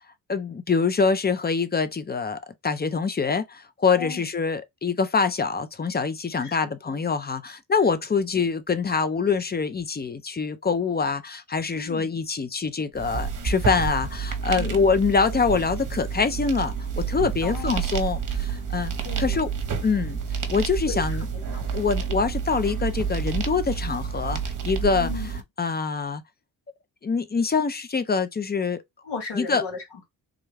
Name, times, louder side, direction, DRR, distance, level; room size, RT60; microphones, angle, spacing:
voice 1, 0.3-18.9 19.2-19.5 19.8-20.2 20.5-21.2 21.7-25.1 25.6-26.2 27.0-28.8 29.4-29.6, left 5 dB, 25° left, 0.5 m, -25 dB
voice 2, 4.0-4.3 6.4-7.0 11.7-12.2 14.6-15.0 17.4-17.9 19.0-19.5 20.9-21.6 25.0-25.4 29.0-30.1, left 5 dB, 80° left, 1.7 m, -37 dB
sound 1, 12.9-25.4, right 6 dB, 50° right, 0.9 m, -29 dB
3.6 x 2.2 x 3.2 m
supercardioid pair, 60°, 41 cm